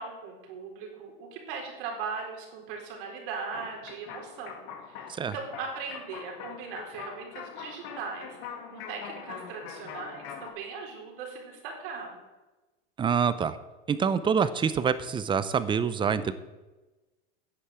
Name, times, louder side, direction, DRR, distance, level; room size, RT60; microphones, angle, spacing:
voice 1, 0.0-8.4 8.7-12.2, right 5 dB, 65° right, 1 dB, 4.1 m, -39 dB
sound 1, 3.5-10.5, left 7 dB, 55° left, 2.1 m, -43 dB
voice 2, 13.0-13.6 13.9-16.3, right 6 dB, 15° right, 14 dB, 0.6 m, -26 dB
10.5 x 8.3 x 7.5 m, 1.1 s
supercardioid pair, 140°, 29 cm